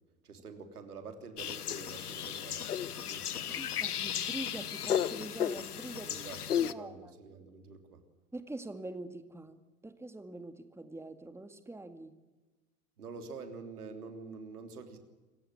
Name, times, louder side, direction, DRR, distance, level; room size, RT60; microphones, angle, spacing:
voice 1, 0.2-3.6 6.0-8.0 13.0-15.0, right 4 dB, 85° right, 7 dB, 3.4 m, -47 dB
sound 1, 1.4-6.7, left 9 dB, 90° left, 1.0 m, -34 dB
voice 2, 3.6-6.2 6.6-7.1 8.3-12.1, right 2 dB, 5° right, 9 dB, 2.1 m, -44 dB
26.5 x 16.5 x 10.0 m, 1.2 s
hypercardioid pair, 85°, 44 cm